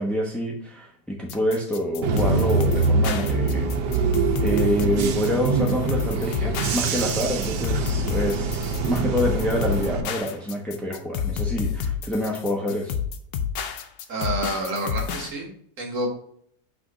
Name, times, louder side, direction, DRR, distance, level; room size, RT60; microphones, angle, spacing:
voice 1, 0.0-3.7 4.4-12.9, equal, ahead, -1 dB, 0.4 m, -27 dB
sound 1, 1.3-15.3, left 8 dB, 75° left, 1.2 m, -29 dB
Bus / Engine, 2.0-10.0, right 4 dB, 85° right, 1.3 m, -24 dB
voice 2, 14.1-16.1, right 1 dB, 55° right, 1 dB, 1.4 m, -29 dB
6.1 x 3.4 x 5.1 m, 0.63 s
omnidirectional pair, 1.8 m